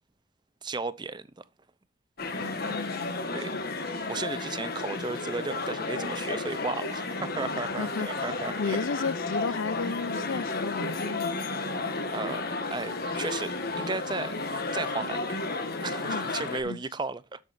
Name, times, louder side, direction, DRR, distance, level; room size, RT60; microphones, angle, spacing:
voice 1, 0.6-1.4 2.3-3.0 3.3-3.5 4.1-8.8 12.1-12.4 12.7-14.4 14.7-15.4 15.8-17.4, right 3 dB, 20° right, 0.5 m, -35 dB
sound 1, 2.2-16.6, left 3 dB, 50° left, 1.5 m, -32 dB
voice 2, 2.4-3.3 7.6-11.4 16.1-16.3 16.6-16.8, left 4 dB, 75° left, 0.5 m, -34 dB
13.0 x 7.5 x 2.6 m
head